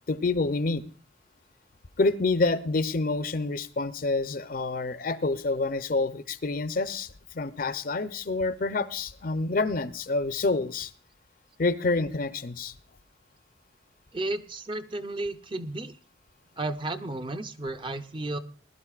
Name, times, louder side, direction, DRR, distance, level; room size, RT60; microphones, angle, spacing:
voice 1, 0.1-0.8 2.0-10.9 11.6-12.7, left 3 dB, 45° left, 13 dB, 0.6 m, -27 dB
voice 2, 14.1-16.0 16.6-18.4, right 2 dB, 25° right, 9 dB, 0.6 m, -33 dB
20.0 x 12.0 x 2.4 m, 0.40 s
head